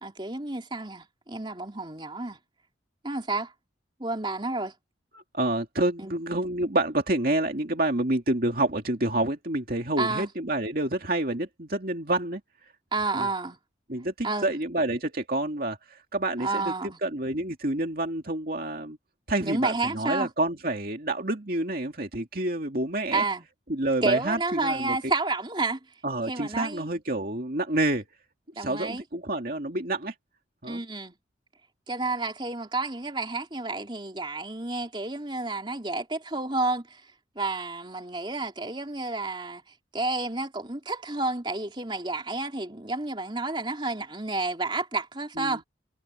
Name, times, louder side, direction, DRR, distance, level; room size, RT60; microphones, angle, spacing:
voice 1, 0.0-2.4 3.0-3.5 4.0-4.7 6.0-6.1 10.0-10.3 12.9-13.6 14.2-14.5 16.4-17.0 19.4-20.3 23.1-23.4 24.0-25.8 26.3-26.9 28.5-29.0 30.6-31.1 31.9-37.0 37.3-39.6 39.9-45.6, right 3 dB, 25° right, 3.4 m, -30 dB
voice 2, 5.1-12.4 13.1-13.3 13.9-19.0 19.3-23.2 23.7-25.1 26.0-28.1 28.6-30.1 30.6-30.8 45.4-45.6, right 1 dB, 50° right, 2.5 m, -28 dB
head